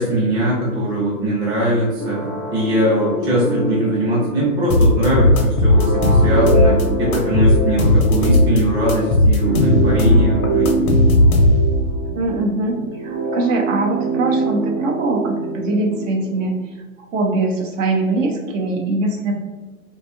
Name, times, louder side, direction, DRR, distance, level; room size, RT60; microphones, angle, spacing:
voice 1, 0.0-2.2 2.5-10.9, right 1 dB, 10° right, -7 dB, 0.4 m, -20 dB
sound 1, 2.0-16.5, right 2 dB, 35° right, 0.8 m, -25 dB
sound 2, 4.7-6.8 7.1-8.6 8.9-11.8, left 1 dB, 90° left, 0.6 m, -15 dB
voice 2, 12.1-16.6 17.0-19.3, right 2 dB, 60° right, 1 dB, 0.6 m, -22 dB
2.6 x 2.3 x 2.4 m, 1.3 s
hypercardioid pair, 120°, 43 cm